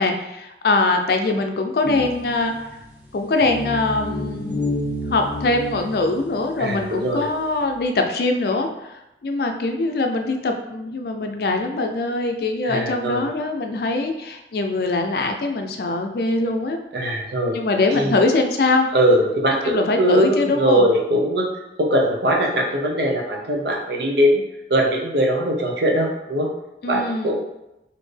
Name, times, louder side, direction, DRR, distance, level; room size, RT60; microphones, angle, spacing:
voice 1, 0.0-2.7 3.1-4.7 5.1-16.8 17.5-18.9 19.6-20.9 26.8-27.4, left 2 dB, 60° left, 5 dB, 0.4 m, -22 dB
sound 1, 1.8-7.1, left 1 dB, 10° right, 0.7 m, -30 dB
voice 2, 6.6-7.3 12.6-13.3 16.9-17.6 17.9-18.1 18.9-21.5 21.8-24.4 24.7-26.5 26.9-27.4, equal, 65° right, 0 dB, 0.7 m, -21 dB
4.2 x 2.6 x 3.3 m, 0.91 s
head